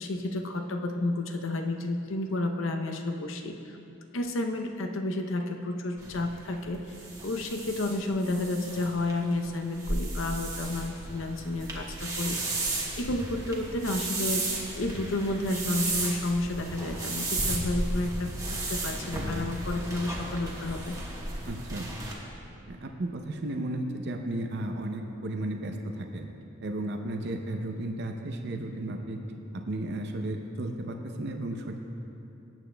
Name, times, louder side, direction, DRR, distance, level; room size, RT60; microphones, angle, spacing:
voice 1, 0.0-3.8 4.1-6.8 7.2-12.4 13.0-18.3 18.7-21.0, left 2 dB, 70° left, 5 dB, 0.7 m, -31 dB
sound 1, 6.0-22.1, right 2 dB, 15° right, 1.3 m, -34 dB
voice 2, 21.5-21.9 22.7-26.3 26.6-29.2 29.5-31.8, right 1 dB, 55° right, 3 dB, 0.6 m, -34 dB
18.0 x 8.9 x 2.2 m, 2.8 s
head